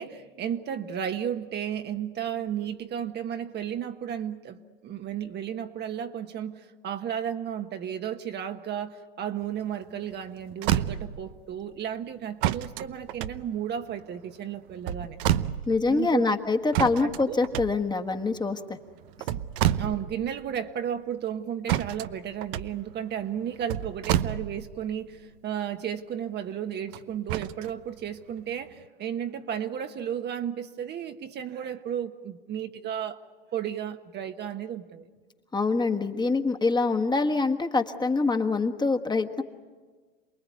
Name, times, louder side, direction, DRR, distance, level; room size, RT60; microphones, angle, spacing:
voice 1, 0.0-15.2 15.9-16.2 17.0-17.3 19.7-33.2 33.5-35.1, right 9 dB, 35° right, 7 dB, 1.2 m, -33 dB
sound 1, 10.1-10.2 10.5-11.3 12.4-14.0 14.7-15.9 16.7-18.2 19.0-20.3 20.6-20.7 21.7-24.9 26.9-27.7 28.4-28.5, right 12 dB, 65° right, 0.9 m, -29 dB
voice 2, 15.7-18.8 35.5-39.4, left 3 dB, 15° left, 5 dB, 1.5 m, -25 dB
28.5 x 20.5 x 9.4 m, 1.4 s
hypercardioid pair, 95°, 29 cm